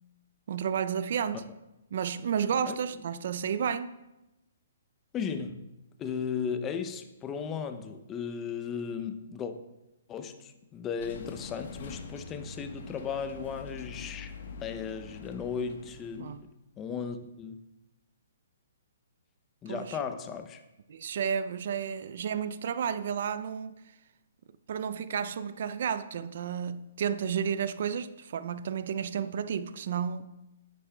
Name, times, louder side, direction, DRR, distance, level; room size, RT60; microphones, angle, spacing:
voice 1, 0.5-1.4 1.9-4.0 16.2-16.4 19.7-20.0 20.9-23.8 24.7-30.3, right 7 dB, 55° right, 0.4 m, -32 dB
voice 2, 5.1-5.7 6.0-9.5 10.1-16.5 16.8-17.6 19.6-20.6, left 6 dB, 15° left, 0.5 m, -36 dB
sound 1, 11.0-16.5, left 4 dB, 60° left, 1.1 m, -44 dB
10.0 x 8.2 x 2.2 m
hypercardioid pair, 160°, 0 cm